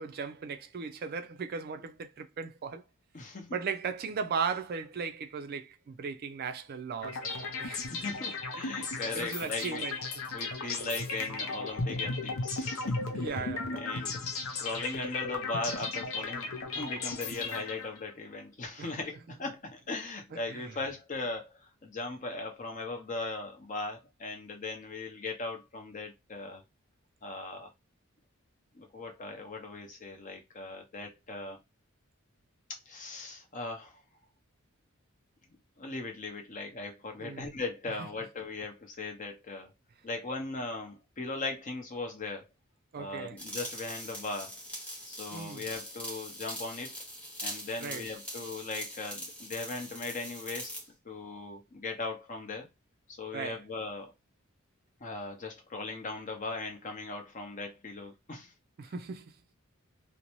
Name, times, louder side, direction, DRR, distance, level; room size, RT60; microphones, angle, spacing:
voice 1, 0.0-2.8 3.5-8.0 9.1-10.0 10.6-10.7 13.1-14.1 18.8-18.9 20.3-20.8 37.2-37.5 42.9-43.4 45.3-45.7 47.8-48.1 53.3-53.6 58.8-59.4, right 5 dB, 45° right, 0.4 m, -37 dB
voice 2, 3.1-3.5 7.9-9.8 10.3-13.3 13.7-14.2 14.6-26.6 27.2-27.7 28.7-31.6 32.9-34.0 35.8-39.7 40.0-42.5 42.9-44.6 45.1-47.0 47.4-50.8 51.0-52.7 53.1-54.1 55.0-58.5, left 3 dB, 35° left, 0.7 m, -39 dB
sound 1, 7.0-18.1, left 3 dB, 70° left, 0.6 m, -35 dB
sound 2, 43.4-50.9, equal, 5° left, 0.9 m, -42 dB
2.6 x 2.1 x 2.9 m
head